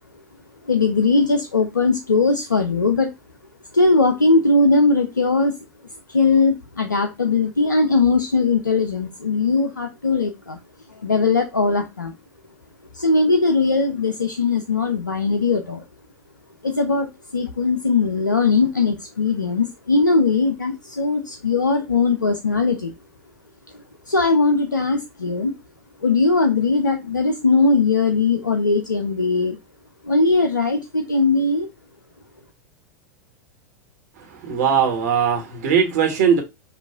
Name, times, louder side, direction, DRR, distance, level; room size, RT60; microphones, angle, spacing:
voice 1, 0.6-3.1 3.7-5.5 6.1-10.6 11.0-12.1 12.9-15.8 16.6-22.9 23.7-25.5 26.0-29.6 30.0-31.7, left 3 dB, 85° left, 5 dB, 0.4 m, -19 dB
voice 2, 34.4-36.4, right 7 dB, 60° right, 2 dB, 1.4 m, -19 dB
5.8 x 2.4 x 2.3 m, 0.23 s
figure-of-eight pair, 90°, 10 cm